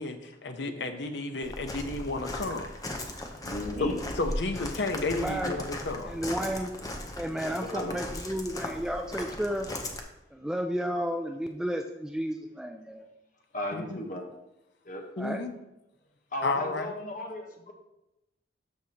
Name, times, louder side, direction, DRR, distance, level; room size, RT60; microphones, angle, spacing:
voice 1, 0.0-2.7 3.8-6.2 13.7-13.9 15.2-15.5 16.4-16.9, left 2 dB, 75° left, 6 dB, 0.8 m, -32 dB
Walk footsteps, 1.4-10.0, left 1 dB, 20° left, 0.7 m, -38 dB
voice 2, 3.4-4.0 7.6-7.9 13.5-14.2 14.8-15.0 16.3-17.7, left 1 dB, 45° left, 1 dB, 1.2 m, -35 dB
voice 3, 5.0-5.7 6.0-6.7 7.1-9.7 10.3-13.1 15.2-15.4, equal, 5° right, 4 dB, 0.3 m, -32 dB
13.0 x 4.9 x 2.9 m, 0.92 s
head